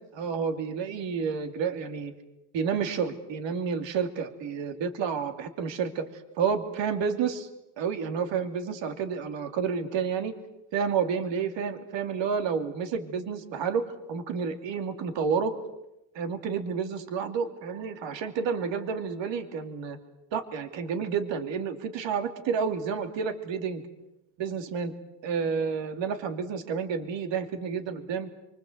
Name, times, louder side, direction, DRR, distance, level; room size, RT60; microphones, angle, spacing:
voice 1, 0.1-2.1 2.5-7.5 7.8-10.3 10.7-15.5 16.1-20.0 20.3-23.9 24.4-24.9 25.2-28.3, right 6 dB, 60° right, 7 dB, 2.9 m, -30 dB
30.0 x 24.0 x 8.0 m, 0.91 s
cardioid pair, 140°, 50 cm